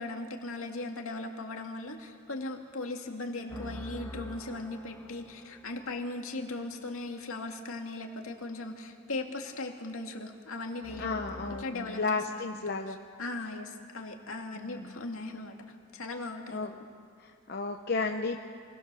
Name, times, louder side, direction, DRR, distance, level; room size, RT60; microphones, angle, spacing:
voice 1, 0.0-12.6 12.9-15.6 15.9-16.8, left 2 dB, 70° left, 2 dB, 2.3 m, -38 dB
voice 2, 3.4-3.7 11.0-13.0 14.6-14.9 16.5-16.7 17.2-18.4, left 3 dB, 45° left, 3 dB, 0.8 m, -33 dB
sound 1, 3.5-6.5 10.8-11.6, equal, 10° left, 1.2 m, -46 dB
27.5 x 20.5 x 6.9 m, 2.2 s
head